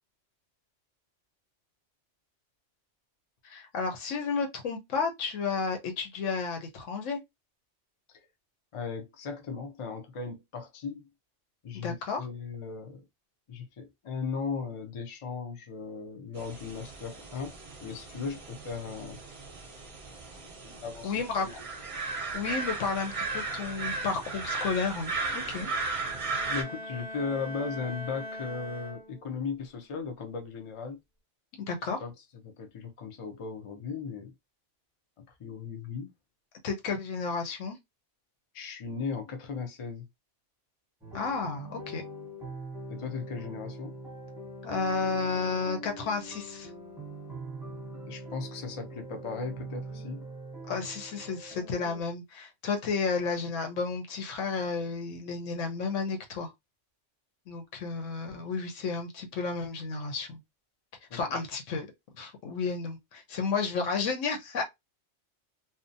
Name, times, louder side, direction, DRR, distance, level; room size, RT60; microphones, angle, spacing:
voice 1, 3.4-7.2 11.7-12.3 21.0-21.5 22.3-25.7 31.6-32.0 36.6-37.8 41.1-42.0 44.6-46.7 50.7-56.5 57.5-60.4 61.1-61.9 62.1-64.6, left 4 dB, 85° left, 1.1 m, -32 dB
voice 2, 8.7-11.1 11.6-13.0 13.5-19.2 20.4-21.5 26.5-31.0 32.0-32.1 32.4-34.3 35.2-36.1 38.5-40.1 42.9-44.0 48.1-50.2 61.1-61.2, left 5 dB, 50° left, 0.3 m, -37 dB
sound 1, 16.4-26.6, right 3 dB, 40° right, 0.5 m, -36 dB
Bowed string instrument, 26.0-29.5, left 1 dB, 25° left, 0.8 m, -41 dB
sound 2, 41.0-52.0, right 1 dB, ahead, 0.7 m, -43 dB
2.6 x 2.1 x 2.6 m
omnidirectional pair, 1.2 m